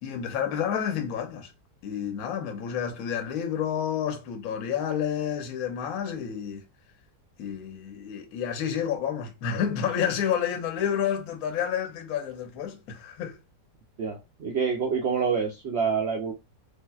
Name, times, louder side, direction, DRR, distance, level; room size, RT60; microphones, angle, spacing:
voice 1, 0.0-1.5 1.8-6.6 7.4-13.4, left 8 dB, 65° left, 1.0 m, -30 dB
voice 2, 14.0-16.3, right 5 dB, 80° right, 0.5 m, -27 dB
3.3 x 2.7 x 2.3 m
omnidirectional pair, 1.8 m